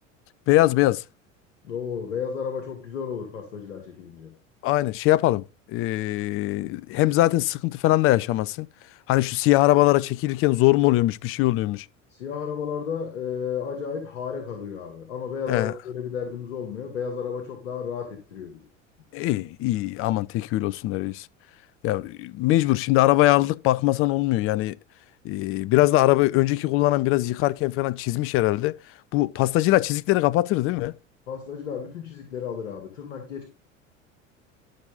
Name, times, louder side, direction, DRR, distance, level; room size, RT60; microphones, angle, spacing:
voice 1, 0.5-1.0 4.6-8.7 9.1-11.9 15.5-15.7 19.1-21.3 21.8-24.8 25.2-28.8 29.1-30.9, left 17 dB, 35° left, 0.5 m, -22 dB
voice 2, 1.6-4.3 12.1-18.7 31.3-33.5, left 7 dB, 70° left, 2.2 m, -33 dB
11.5 x 6.2 x 3.8 m
figure-of-eight pair, 75°, 38 cm